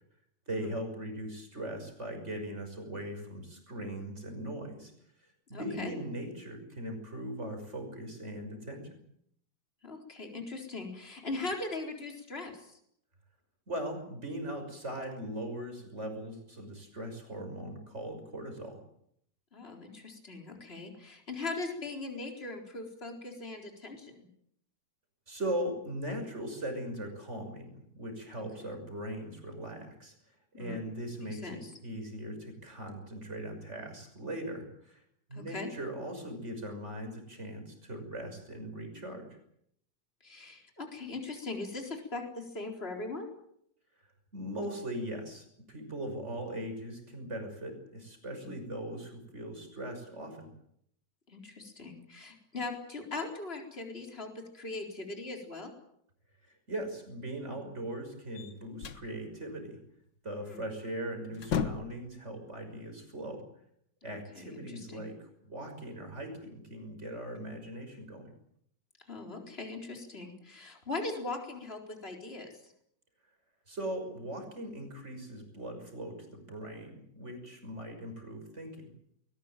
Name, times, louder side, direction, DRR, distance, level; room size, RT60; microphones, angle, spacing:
voice 1, 0.5-4.9 5.5-8.8 13.7-18.8 25.3-30.1 30.5-35.0 35.3-39.3 44.3-50.5 56.7-59.8 60.2-63.4 64.0-68.3 73.7-78.9, right 1 dB, 35° right, 5 dB, 6.4 m, -39 dB
voice 2, 5.5-5.9 9.8-12.8 19.5-24.3 28.6-28.7 30.6-30.9 31.3-31.7 35.3-35.7 40.2-43.3 48.3-48.6 51.3-55.7 60.4-60.6 64.1-65.0 69.0-72.7, left 3 dB, 30° left, 2 dB, 4.4 m, -40 dB
sound 1, 58.3-59.1 60.7-60.9 61.2-62.1, left 7 dB, 75° left, 2.0 m, -34 dB
21.5 x 19.5 x 9.1 m, 0.71 s
omnidirectional pair, 2.0 m